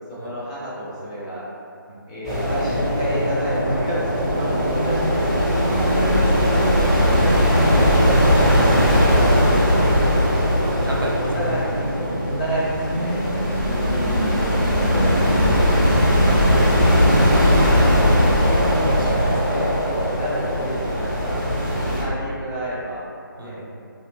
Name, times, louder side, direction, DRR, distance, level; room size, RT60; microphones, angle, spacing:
voice 1, 0.2-1.4 2.1-3.9 4.3-7.5 11.1-11.7 12.0-14.6 14.9-15.9 19.5-21.4 21.8-23.0 23.4-23.6, equal, 15° left, -10 dB, 0.5 m, -30 dB
sound 1, 2.2-22.0, equal, 5° right, 1.2 m, -19 dB
voice 2, 5.6-5.9 8.2-8.8 9.2-9.7 10.8-12.1 15.9-16.0 16.6-17.3 18.4-19.7 20.8-21.1 23.4-23.7, right 1 dB, 70° right, -2 dB, 0.6 m, -32 dB
2.8 x 2.1 x 3.1 m, 2.5 s
figure-of-eight pair, 160°, 12 cm